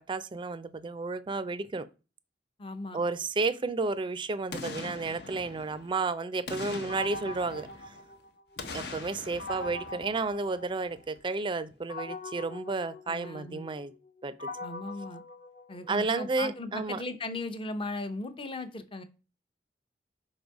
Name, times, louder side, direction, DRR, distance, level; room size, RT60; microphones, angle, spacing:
voice 1, 0.0-1.9 2.9-7.9 8.7-13.9 14.2-14.5 15.9-17.0, right 3 dB, 30° right, 0.4 m, -32 dB
voice 2, 2.6-3.0 13.1-13.7 14.6-15.2 15.7-19.0, left 2 dB, 30° left, 0.7 m, -37 dB
Boom, 4.5-6.0 6.5-8.1 8.6-10.8 11.2-11.3, left 3 dB, 65° left, 0.8 m, -43 dB
sound 1, 6.9-8.7 9.4-11.2 11.9-16.2, left 2 dB, 45° left, 1.1 m, -42 dB
5.3 x 4.0 x 4.6 m
head